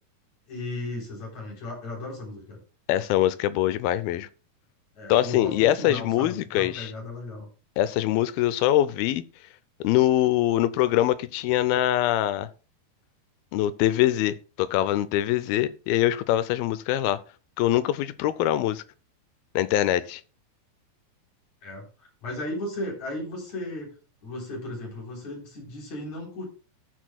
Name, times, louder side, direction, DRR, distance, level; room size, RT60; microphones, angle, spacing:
voice 1, 0.5-2.6 5.0-7.5 21.6-23.9 24.2-26.5, left 2 dB, 45° left, 4.7 m, -35 dB
voice 2, 2.9-4.3 5.1-6.9 7.8-9.2 9.8-12.5 13.5-17.2 17.6-18.8 19.6-20.2, left 13 dB, 80° left, 2.3 m, -23 dB
18.0 x 6.4 x 2.2 m
omnidirectional pair, 4.6 m